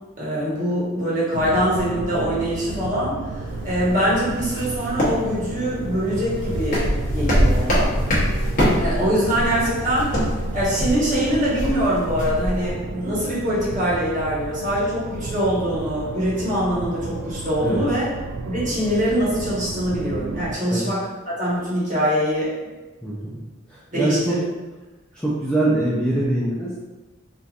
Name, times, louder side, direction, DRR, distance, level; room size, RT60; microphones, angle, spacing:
voice 1, 0.2-3.2 3.6-7.9 8.8-10.1 10.5-18.1 18.4-22.5 23.9-24.4, equal, 40° right, -8 dB, 1.2 m, -23 dB
sound 1, 1.3-20.5, right 3 dB, 75° right, 0.3 m, -33 dB
sound 2, 3.5-12.7, equal, 40° left, 0.9 m, -24 dB
voice 2, 23.0-23.4 23.9-24.4 25.2-26.8, right 1 dB, 5° left, -8 dB, 0.4 m, -23 dB
3.6 x 2.7 x 2.4 m, 1.2 s
head